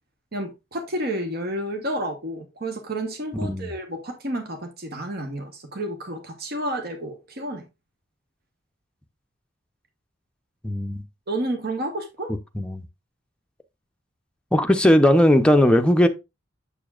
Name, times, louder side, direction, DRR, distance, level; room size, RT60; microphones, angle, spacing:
voice 1, 0.3-7.6 11.3-12.3, right 1 dB, 50° right, 1.1 m, -30 dB
voice 2, 10.6-11.0 12.6-12.8 14.5-16.1, equal, 5° left, 0.6 m, -18 dB
7.0 x 6.8 x 2.4 m
head